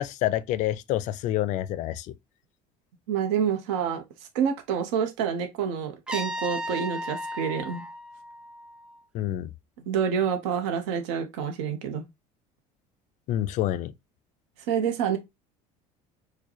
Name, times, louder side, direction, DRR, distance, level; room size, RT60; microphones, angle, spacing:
voice 1, 0.0-2.1 9.1-9.5 13.3-13.9, left 13 dB, 55° left, 0.4 m, -27 dB
voice 2, 3.1-4.0 4.3-7.9 9.8-12.0 14.7-15.2, right 7 dB, 90° right, 0.8 m, -27 dB
Trumpet, 6.1-9.0, equal, 5° right, 0.4 m, -35 dB
4.6 x 2.2 x 2.8 m
cardioid pair, 125°, 16 cm